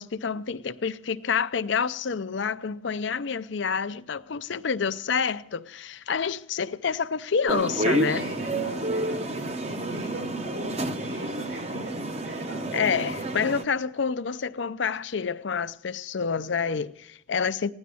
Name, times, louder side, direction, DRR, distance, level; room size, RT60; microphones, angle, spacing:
voice 1, 0.0-8.3 12.7-17.7, left 6 dB, 65° left, 0.5 m, -28 dB
sound 1, 7.5-13.6, right 1 dB, 35° right, 0.7 m, -30 dB
voice 2, 8.1-12.8, right 1 dB, 90° right, 5.7 m, -40 dB
16.5 x 10.5 x 6.9 m
head